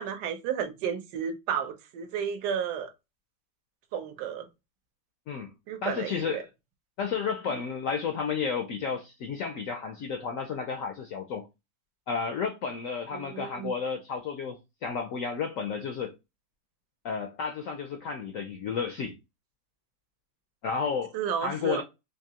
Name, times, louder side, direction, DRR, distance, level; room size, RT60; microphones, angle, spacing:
voice 1, 0.0-2.9 3.9-4.5 5.7-6.4 7.5-7.6 13.1-13.7 21.1-21.8, right 8 dB, 75° right, 1.2 m, -32 dB
voice 2, 5.8-6.5 7.0-11.5 12.1-16.2 17.0-19.1 20.6-21.2 21.4-21.8, left 6 dB, 75° left, 0.7 m, -32 dB
3.5 x 2.7 x 2.7 m
omnidirectional pair, 1.8 m